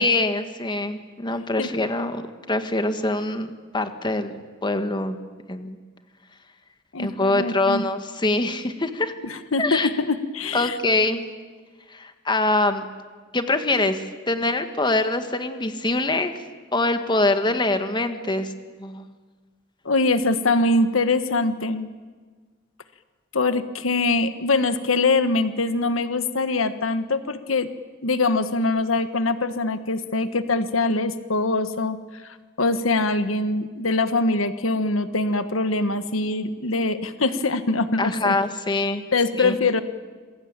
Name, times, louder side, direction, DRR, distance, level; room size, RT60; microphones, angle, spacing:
voice 1, 0.0-5.2 5.5-5.8 7.0-9.1 9.6-9.9 10.5-11.2 11.9-12.9 13.3-16.3 16.7-18.5 18.8-19.1 38.0-39.0 39.4-39.5, left 2 dB, 25° left, 8 dB, 1.6 m, -24 dB
voice 2, 6.9-7.8 9.2-10.8 19.8-21.9 23.3-27.7 28.0-32.0 32.6-38.3 39.1-39.8, left 3 dB, 85° left, 10 dB, 1.4 m, -23 dB
27.0 x 21.5 x 8.9 m, 1.4 s
head